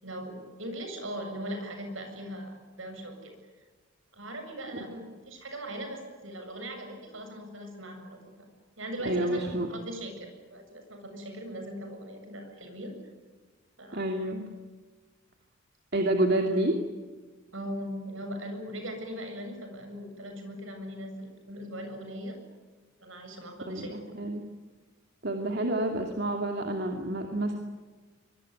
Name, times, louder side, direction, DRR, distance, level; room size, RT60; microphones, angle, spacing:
voice 1, 0.0-3.3 4.1-8.5 8.8-12.9 13.8-14.0 17.5-22.4 23.0-24.0, right 1 dB, 70° right, 6 dB, 7.6 m, -39 dB
voice 2, 9.0-9.7 13.9-14.5 15.9-16.8 23.7-24.5 25.2-27.6, right 1 dB, 50° right, 3 dB, 2.6 m, -28 dB
24.5 x 23.0 x 9.7 m, 1.3 s
head